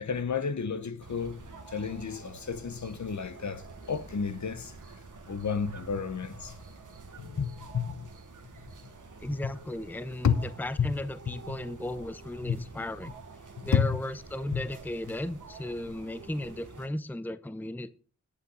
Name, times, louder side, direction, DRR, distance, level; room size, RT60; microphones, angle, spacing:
voice 1, 0.0-1.4 1.7-4.7 5.3-6.5 7.2-8.1 10.2-10.3 10.8-10.9 11.5-11.6 12.4-12.6 13.7-14.0 14.5-14.6, left 6 dB, 70° left, 1.0 m, -30 dB
sound 1, 1.0-16.9, right 3 dB, 85° right, 1.7 m, -48 dB
voice 2, 9.2-13.1 13.6-17.9, left 1 dB, 5° left, 0.6 m, -35 dB
17.0 x 5.7 x 4.0 m
cardioid pair, 40°, 30 cm